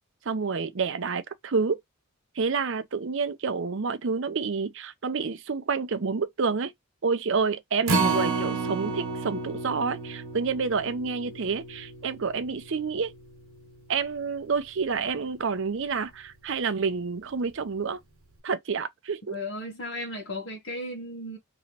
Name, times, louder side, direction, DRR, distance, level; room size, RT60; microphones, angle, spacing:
voice 1, 0.3-1.8 2.4-6.7 7.0-13.1 13.9-18.0 18.4-19.4, right 5 dB, 60° right, 0.6 m, -28 dB
Acoustic guitar, 7.9-14.2 14.6-14.7 15.1-15.2, right 3 dB, 85° right, 1.2 m, -31 dB
voice 2, 19.3-21.4, left 1 dB, 65° left, 1.2 m, -35 dB
3.1 x 2.9 x 2.8 m
head